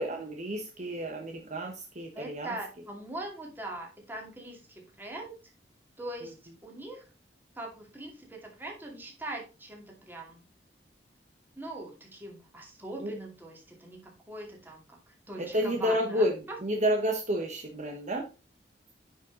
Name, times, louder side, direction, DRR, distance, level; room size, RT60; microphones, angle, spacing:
voice 1, 0.0-2.6 6.2-6.3 13.0-13.1 15.4-16.3 16.6-18.2, equal, 45° right, 2 dB, 1.2 m, -30 dB
voice 2, 2.1-5.4 6.0-6.3 6.6-7.0 7.6-10.4 11.6-16.6, right 2 dB, 10° right, 0 dB, 2.5 m, -41 dB
9.7 x 5.6 x 3.9 m, 0.30 s
head